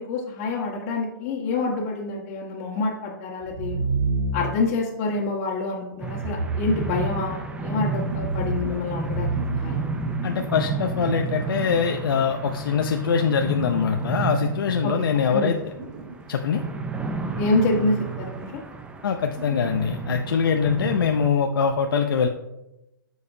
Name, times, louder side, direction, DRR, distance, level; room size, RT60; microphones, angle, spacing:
voice 1, 0.0-3.8 4.3-9.9 14.8-14.9 15.3-15.5 17.3-18.6, left 3 dB, 40° left, -5 dB, 1.7 m, -27 dB
sound 1, 3.4-4.7 6.1-7.5 8.0-10.5, right 3 dB, 60° right, 2.4 m, -29 dB
sound 2, 6.0-21.3, right 4 dB, 10° right, 0.6 m, -32 dB
sound 3, 7.8-12.4 13.1-14.7 15.0-16.2 16.6-16.7 17.2-18.5 19.3-20.0, right 4 dB, 35° right, 2.4 m, -42 dB
voice 2, 10.2-15.7 16.3-16.6 19.0-22.3, left 6 dB, 75° left, 4 dB, 0.7 m, -23 dB
13.5 x 4.8 x 2.8 m, 0.94 s
hypercardioid pair, 130°, 12 cm